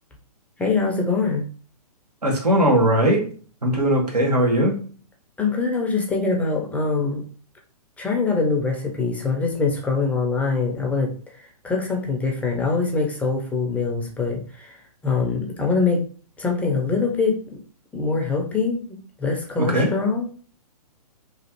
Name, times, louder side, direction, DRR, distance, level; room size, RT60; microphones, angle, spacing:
voice 1, 0.6-1.4 5.4-7.2 8.0-11.1 11.6-14.8 15.0-16.0 16.4-17.6 17.9-20.3, left 4 dB, 5° left, 0 dB, 0.5 m, -23 dB
voice 2, 2.2-3.2 3.6-4.7 19.6-19.9, right 1 dB, 85° right, -1 dB, 1.2 m, -19 dB
3.1 x 2.4 x 2.9 m, 0.40 s
figure-of-eight pair, 125°, 20 cm